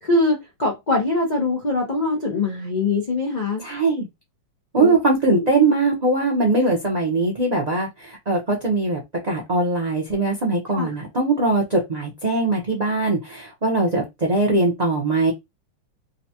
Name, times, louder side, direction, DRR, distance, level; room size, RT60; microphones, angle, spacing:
voice 1, 0.0-3.6 4.7-5.5 10.7-10.9, left 2 dB, 80° left, 0.4 m, -23 dB
voice 2, 3.6-4.1 4.7-15.3, right 2 dB, 40° right, 0.5 m, -21 dB
3.9 x 2.2 x 2.8 m
omnidirectional pair, 2.1 m